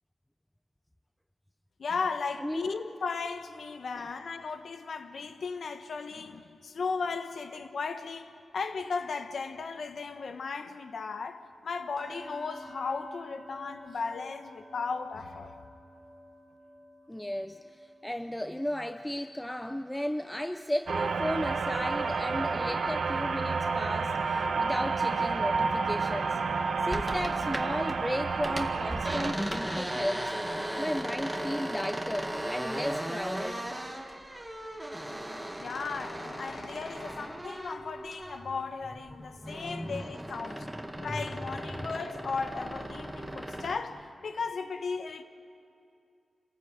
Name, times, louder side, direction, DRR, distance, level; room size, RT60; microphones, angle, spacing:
voice 1, 1.8-15.6 35.6-40.7 41.0-45.2, left 4 dB, 75° left, 1.1 m, -36 dB
voice 2, 2.4-2.7 4.0-4.1 17.1-26.4 26.8-30.3 30.8-33.6 39.4-40.1 40.4-41.2, equal, 10° left, 0.6 m, -35 dB
sound 1, 12.0-21.9 22.2-22.5 22.9-23.1, equal, 55° left, 5.0 m, -51 dB
sound 2, 20.9-29.3, right 4 dB, 75° right, 1.2 m, -30 dB
sound 3, 26.9-28.0 28.3-38.6 39.0-43.8, right 1 dB, 10° right, 1.8 m, -37 dB
26.0 x 14.5 x 8.6 m
cardioid pair, 75°, 0 cm